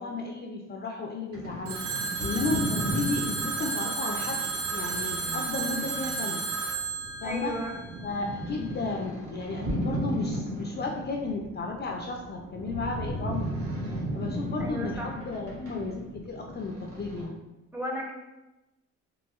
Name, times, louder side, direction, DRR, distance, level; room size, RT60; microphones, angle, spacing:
voice 1, 0.0-6.4 7.2-7.5 8.0-13.5 14.1-17.4, left 3 dB, 35° left, 1 dB, 0.4 m, -34 dB
sound 1, 1.3-17.3, equal, 50° right, 1.2 m, -36 dB
Telephone, 1.7-8.5, right 4 dB, 90° right, 0.7 m, -32 dB
voice 2, 7.2-7.7 14.6-15.1 17.7-18.1, equal, 5° right, -1 dB, 0.7 m, -34 dB
4.1 x 2.8 x 2.3 m, 1.0 s
cardioid pair, 90°, 30 cm